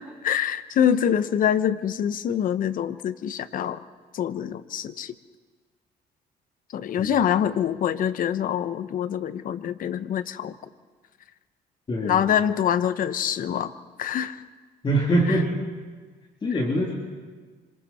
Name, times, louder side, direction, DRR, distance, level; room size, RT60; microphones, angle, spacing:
voice 1, 0.0-3.8 4.1-5.1 6.7-10.5 12.0-13.7 14.0-14.4 15.3-15.4, left 9 dB, 55° left, 13 dB, 0.9 m, -25 dB
voice 2, 11.9-12.3 14.8-15.6 16.4-16.9, right 1 dB, 30° left, -1 dB, 3.3 m, -23 dB
26.5 x 25.5 x 4.3 m, 1.4 s
cardioid pair, 110°, 17 cm